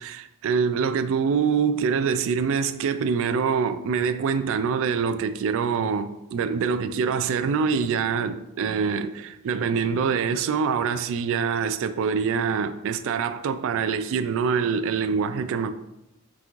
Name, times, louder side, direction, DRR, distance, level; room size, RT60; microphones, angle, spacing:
voice 1, 0.0-15.7, right 6 dB, 65° right, 0.3 m, -25 dB
5.8 x 3.0 x 2.4 m
head